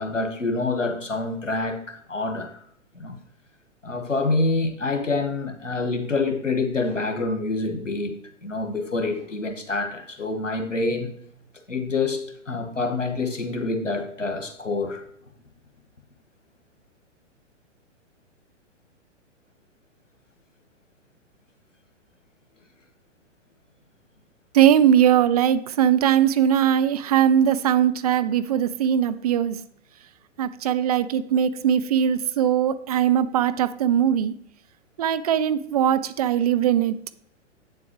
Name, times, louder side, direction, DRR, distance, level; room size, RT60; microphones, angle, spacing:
voice 1, 0.0-2.5 2.9-3.1 3.8-11.1 11.7-15.0, left 3 dB, 90° left, 6 dB, 1.4 m, -27 dB
voice 2, 24.5-29.6 30.4-34.3 35.0-37.0, right 9 dB, 35° right, 13 dB, 0.4 m, -20 dB
8.2 x 7.3 x 3.1 m, 0.69 s
figure-of-eight pair, 115°, 37 cm